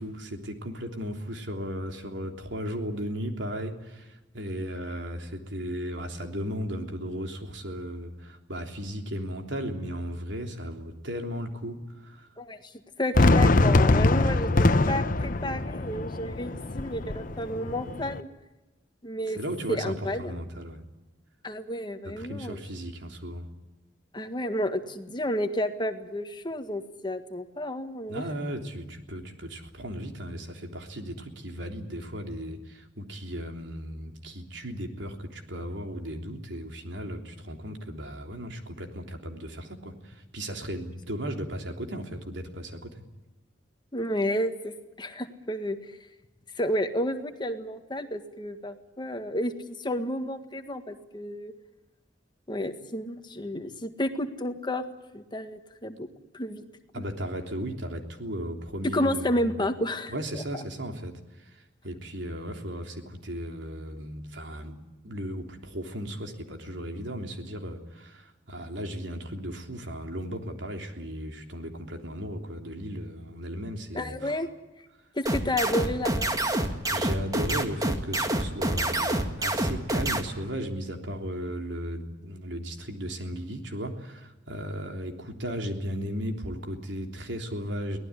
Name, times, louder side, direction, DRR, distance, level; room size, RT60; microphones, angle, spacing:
voice 1, 0.0-12.3 14.5-14.8 19.4-20.8 22.2-23.5 28.1-43.0 56.9-59.7 60.1-74.4 76.9-88.0, equal, 85° right, 4 dB, 3.4 m, -36 dB
voice 2, 12.4-12.7 13.0-18.3 19.0-19.4 19.7-20.4 21.4-22.6 24.1-28.2 43.9-44.7 45.0-45.8 46.6-51.5 52.5-54.8 55.1-56.1 56.3-56.6 56.9-57.0 58.9-60.4 73.9-74.5 75.1-76.3, left 1 dB, 25° left, 7 dB, 1.8 m, -31 dB
Fireworks, 13.2-18.2, left 2 dB, 50° left, 1.0 m, -23 dB
sound 1, 75.3-80.2, right 1 dB, 20° right, 2.1 m, -26 dB
24.0 x 18.0 x 9.8 m, 1.1 s
head